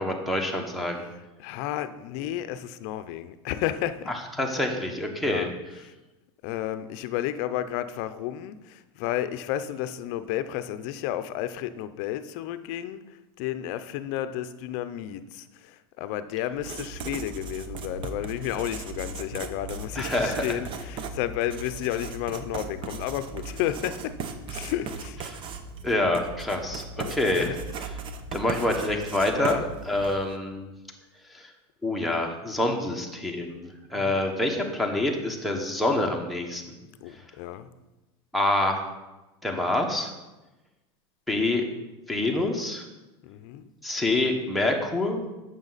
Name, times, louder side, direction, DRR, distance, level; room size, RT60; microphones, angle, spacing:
voice 1, 0.0-1.0 4.1-5.5 19.9-20.6 25.3-25.4 25.8-27.5 28.3-29.6 29.9-30.7 31.3-31.5 31.8-36.8 38.3-38.8 39.4-40.1 41.3-41.6 42.1-42.8 43.8-45.2, left 1 dB, ahead, 3 dB, 1.3 m, -26 dB
voice 2, 1.0-4.1 5.2-5.9 6.4-13.0 13.4-24.2 24.5-25.2 27.0-27.8 29.3-29.7 33.9-34.2 37.0-37.7 43.2-43.7, left 12 dB, 60° left, 12 dB, 0.6 m, -32 dB
Writing, 16.5-30.3, right 4 dB, 40° right, 0.8 m, -37 dB
8.8 x 6.5 x 4.1 m, 1.1 s
supercardioid pair, 125°, 14 cm